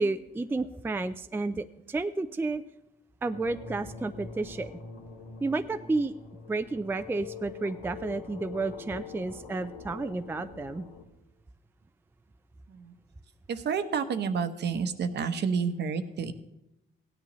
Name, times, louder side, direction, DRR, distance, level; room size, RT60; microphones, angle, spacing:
voice 1, 0.0-2.6 3.2-4.7 5.4-6.1 6.5-10.8, right 3 dB, 10° right, 9 dB, 0.4 m, -31 dB
sound 1, 3.3-11.0, left 5 dB, 85° left, 1.7 m, -44 dB
voice 2, 13.5-16.3, right 6 dB, 60° right, 9 dB, 1.0 m, -29 dB
16.0 x 10.0 x 3.1 m, 0.86 s
cardioid pair, 90°, 20 cm